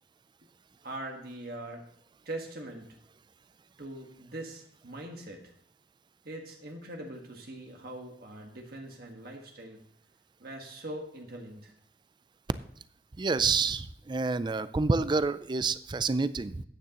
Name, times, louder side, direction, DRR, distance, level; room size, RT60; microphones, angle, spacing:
voice 1, 0.8-1.9 2.2-3.0 3.8-5.5 6.2-9.8 10.4-11.7, right 1 dB, 55° right, 1 dB, 1.5 m, -42 dB
voice 2, 13.2-16.6, right 4 dB, 25° right, 15 dB, 0.4 m, -28 dB
13.5 x 9.4 x 3.0 m, 0.68 s
head